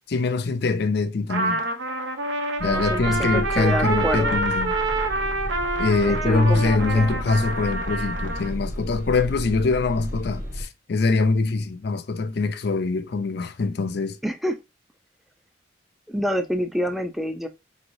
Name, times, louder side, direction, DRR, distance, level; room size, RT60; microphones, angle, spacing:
voice 1, 0.1-1.6 2.6-4.8 5.8-14.2, left 3 dB, 55° left, 0.5 m, -23 dB
Trumpet, 1.3-8.5, right 2 dB, 65° right, 0.6 m, -27 dB
voice 2, 2.6-4.4 6.1-7.2 14.2-14.6 16.1-17.5, equal, ahead, 0.4 m, -27 dB
sound 1, 2.6-10.6, equal, 45° right, 1.3 m, -32 dB
4.6 x 3.1 x 2.6 m
head